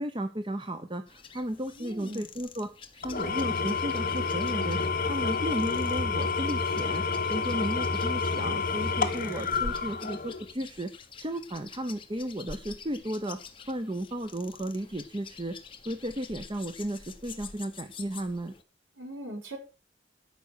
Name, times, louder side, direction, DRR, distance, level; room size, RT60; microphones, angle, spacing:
voice 1, 0.0-2.7 3.0-4.8 5.1-10.9 11.2-13.4 13.7-15.6 15.8-18.5, right 1 dB, 25° right, 8 dB, 0.9 m, -34 dB
sound 1, 1.1-18.6, left 4 dB, 30° left, 1.2 m, -47 dB
voice 2, 1.8-2.3 19.0-19.6, right 1 dB, 85° right, 1 dB, 4.9 m, -40 dB
Engine / Tools, 3.0-10.5, left 4 dB, 50° left, 1.3 m, -29 dB
13.5 x 5.8 x 6.5 m, 0.33 s
head